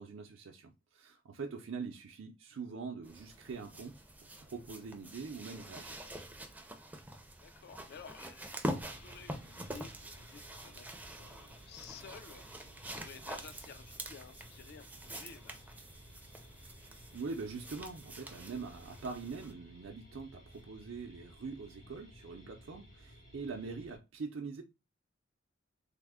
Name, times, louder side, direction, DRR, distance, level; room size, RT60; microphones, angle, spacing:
voice 1, 0.0-4.0 4.4-6.0 17.1-24.6, right 4 dB, 75° right, 0.5 m, -43 dB
sound 1, 3.0-19.5 20.5-20.6, right 1 dB, 10° right, 0.4 m, -46 dB
voice 2, 7.4-12.4 12.9-15.6, left 6 dB, 55° left, 0.4 m, -53 dB
sound 2, 8.8-24.0, equal, 85° left, 1.7 m, -57 dB
3.5 x 2.0 x 3.5 m
head